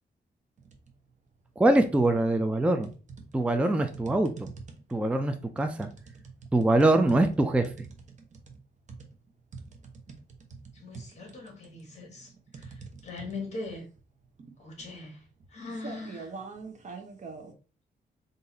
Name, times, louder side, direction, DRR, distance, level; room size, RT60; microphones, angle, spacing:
sound 1, 0.6-1.0 1.4-2.3 2.8-17.5, right 4 dB, 45° right, 0.8 m, -46 dB
voice 1, 1.6-2.9 3.3-4.5 4.9-5.9 6.5-7.7, right 2 dB, 5° right, 0.4 m, -23 dB
voice 2, 10.7-13.8 14.6-15.2 15.5-16.3, left 3 dB, 40° left, 1.8 m, -41 dB
4.0 x 2.6 x 4.0 m
wide cardioid pair, 135°, 18 cm